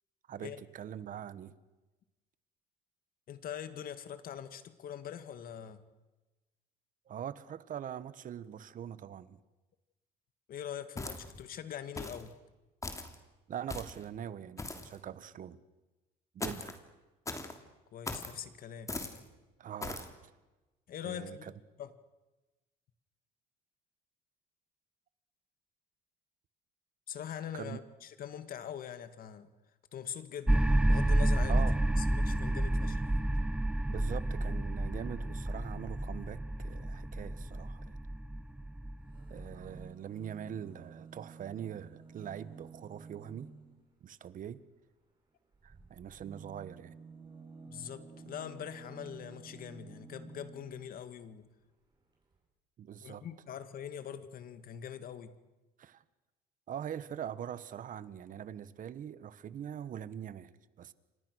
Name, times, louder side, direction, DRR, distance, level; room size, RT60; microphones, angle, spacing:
voice 1, 0.3-1.5 7.0-9.4 13.5-15.6 16.3-16.8 19.6-20.1 21.0-21.5 27.5-27.8 31.5-31.8 33.9-38.0 39.3-43.5 44.0-44.6 45.6-46.9 52.8-53.2 55.8-56.0 56.7-60.9, right 9 dB, 50° right, 15 dB, 1.4 m, -43 dB
voice 2, 3.3-5.8 10.5-12.3 17.9-18.9 20.9-21.5 21.8-21.9 27.1-29.5 29.9-31.6 32.0-33.1 47.6-51.5 53.0-55.3, left 9 dB, 60° left, 11 dB, 2.1 m, -43 dB
sound 1, 11.0-11.4 12.0-12.3 12.8-13.1 13.7-14.0 14.6-14.9 16.4-16.8 17.2-17.5 18.0-18.3 18.9-19.2 19.8-20.1, left 2 dB, 20° left, 3.1 m, -39 dB
sound 2, 30.5-39.8, right 1 dB, 5° right, 0.8 m, -30 dB
sound 3, 39.0-43.9 45.5-51.0 51.9-52.0 52.2-52.3, right 5 dB, 25° right, 6.4 m, -52 dB
29.5 x 25.5 x 6.5 m, 1.1 s
cardioid pair, 110°, 17 cm